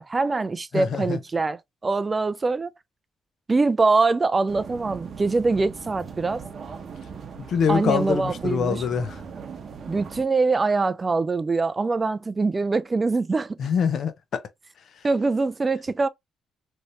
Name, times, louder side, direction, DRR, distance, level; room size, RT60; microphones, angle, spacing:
voice 1, 0.0-2.7 3.5-6.4 7.7-8.8 9.9-13.6 15.0-16.1, right 3 dB, 25° right, 0.3 m, -23 dB
voice 2, 0.7-1.2 7.5-9.2 13.6-14.4, left 7 dB, 60° left, 0.7 m, -24 dB
sound 1, 4.5-10.2, right 6 dB, 55° right, 0.8 m, -39 dB
3.1 x 2.8 x 2.6 m
cardioid pair, 90°, 0 cm